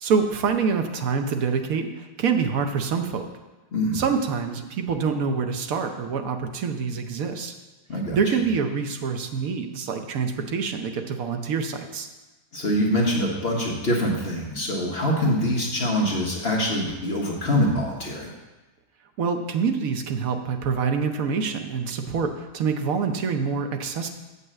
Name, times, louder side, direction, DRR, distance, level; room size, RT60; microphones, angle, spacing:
voice 1, 0.0-3.3 3.9-7.5 8.1-12.1 19.2-24.1, right 5 dB, 65° right, 6 dB, 1.2 m, -26 dB
voice 2, 3.7-4.0 7.9-8.2 12.5-18.3, equal, 40° left, -2 dB, 1.5 m, -24 dB
7.7 x 5.5 x 7.4 m, 1.1 s
omnidirectional pair, 1.7 m